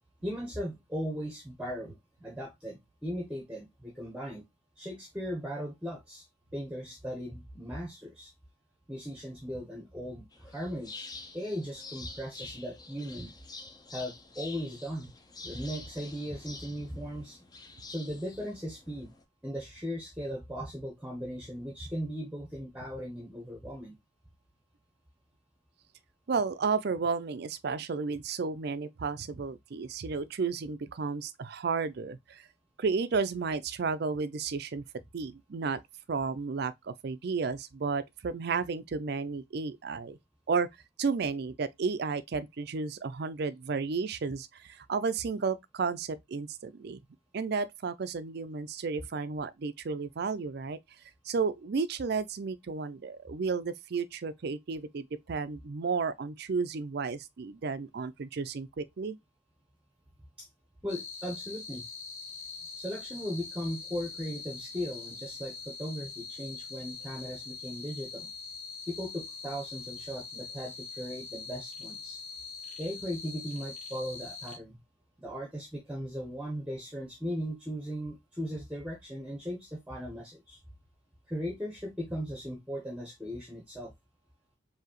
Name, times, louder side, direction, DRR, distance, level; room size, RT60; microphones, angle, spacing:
voice 1, 0.2-4.4 4.8-6.3 6.5-8.3 8.9-13.3 13.9-15.1 15.4-17.4 17.9-19.1 19.4-23.9 60.4-60.5 60.8-61.8 62.8-68.3 68.9-72.2 72.8-74.8 75.2-80.6 81.3-83.9, equal, 5° right, 0.9 m, -38 dB
sound 1, 10.3-19.2, left 3 dB, 20° left, 0.6 m, -47 dB
voice 2, 26.3-32.4 32.8-34.8 35.1-35.8 36.1-40.2 40.5-40.7 41.0-47.0 47.3-50.8 51.2-59.2, right 5 dB, 55° right, 0.4 m, -32 dB
sound 2, 60.9-74.6, left 4 dB, 40° left, 1.2 m, -43 dB
4.7 x 2.8 x 2.9 m
head